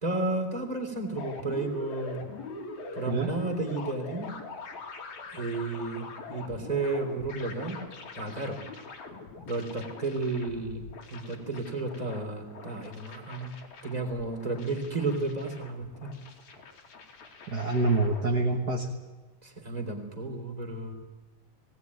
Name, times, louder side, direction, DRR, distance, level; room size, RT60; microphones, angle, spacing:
voice 1, 0.0-2.3 2.9-4.3 5.3-7.8 8.1-8.6 9.5-10.8 11.1-13.5 13.8-16.1 19.4-20.9, right 3 dB, 15° right, 3 dB, 3.0 m, -32 dB
sound 1, 1.2-18.5, left 3 dB, 75° left, 3.8 m, -44 dB
voice 2, 17.5-18.9, right 3 dB, 40° right, 2 dB, 1.6 m, -26 dB
19.5 x 18.5 x 9.5 m, 1.2 s
omnidirectional pair, 3.4 m